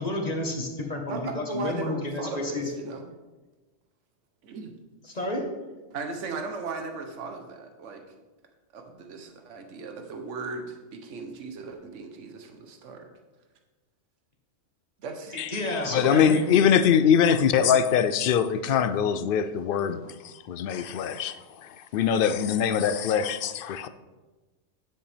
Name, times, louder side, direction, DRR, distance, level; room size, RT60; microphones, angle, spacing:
voice 1, 0.0-2.7 5.1-5.5 15.3-16.4, left 2 dB, 35° left, 1 dB, 1.2 m, -30 dB
voice 2, 1.1-3.0 4.4-4.7 5.9-8.2 8.7-13.1 15.0-15.4, right 4 dB, 80° right, 4 dB, 1.2 m, -37 dB
voice 3, 15.4-23.9, left 8 dB, 60° left, 12 dB, 0.6 m, -23 dB
9.6 x 7.8 x 3.4 m, 1.2 s
omnidirectional pair, 1.2 m